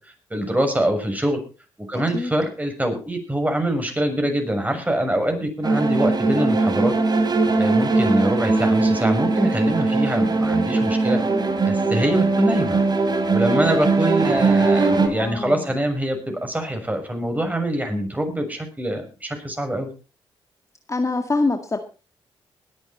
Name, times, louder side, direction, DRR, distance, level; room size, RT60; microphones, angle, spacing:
voice 1, 0.3-1.4 1.9-6.9 7.6-11.2 11.6-12.8 13.3-19.9, right 1 dB, 15° right, 5 dB, 6.5 m, -24 dB
voice 2, 1.9-2.3 15.2-15.7 20.9-21.8, left 3 dB, 30° left, 6 dB, 2.0 m, -25 dB
sound 1, 5.6-15.1, right 3 dB, 45° right, 3.1 m, -20 dB
20.5 x 9.1 x 4.3 m, 0.34 s
supercardioid pair, 50°, 10 cm